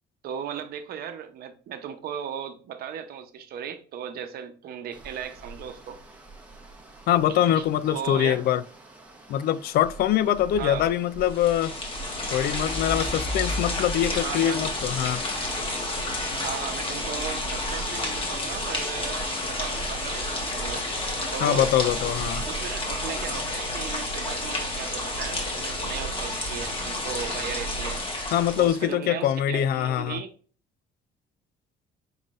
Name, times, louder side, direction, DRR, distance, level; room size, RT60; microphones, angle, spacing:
voice 1, 0.2-6.0 7.3-7.6 7.9-8.4 10.6-10.9 14.2-14.6 16.4-20.9 21.3-21.7 22.5-28.0 28.6-30.3, right 8 dB, 65° right, 0.8 m, -36 dB
sound 1, 4.9-23.2, equal, 10° right, 1.2 m, -42 dB
voice 2, 7.1-8.6 9.3-11.8 12.3-15.2 21.4-22.4 28.3-30.2, left 11 dB, 65° left, 0.4 m, -23 dB
sound 2, 11.2-28.9, left 1 dB, 30° left, 1.4 m, -30 dB
5.3 x 3.7 x 2.5 m
cardioid pair, 110°, 17 cm